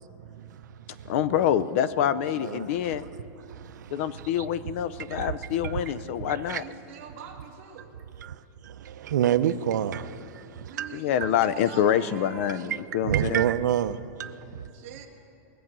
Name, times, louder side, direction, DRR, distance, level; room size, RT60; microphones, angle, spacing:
voice 1, 0.3-0.7 1.0-1.1 2.4-2.7 3.5-4.5 5.1-5.8 6.2-6.6 8.2-10.9 11.2-11.3 12.5-14.3, right 10 dB, 85° right, 0.6 m, -29 dB
voice 2, 1.1-3.0 3.9-6.6 10.9-13.4, left 10 dB, 45° left, 0.5 m, -26 dB
voice 3, 6.4-8.0 10.6-12.9 14.4-15.1, right 7 dB, 40° right, 1.8 m, -45 dB
22.5 x 8.0 x 6.1 m
supercardioid pair, 165°, 10 cm